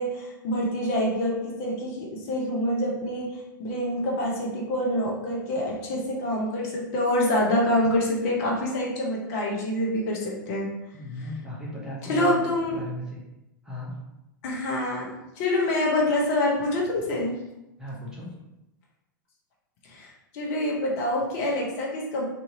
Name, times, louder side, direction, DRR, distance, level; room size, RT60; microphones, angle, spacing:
voice 1, 0.0-10.7 12.1-12.8 14.4-15.1 15.4-17.3 19.9-22.2, left 1 dB, 45° left, -2 dB, 0.8 m, -26 dB
voice 2, 10.9-13.2 13.6-14.0 17.8-18.3, left 1 dB, 5° right, -5 dB, 0.7 m, -36 dB
2.7 x 2.6 x 2.7 m, 0.92 s
figure-of-eight pair, 95°, 11 cm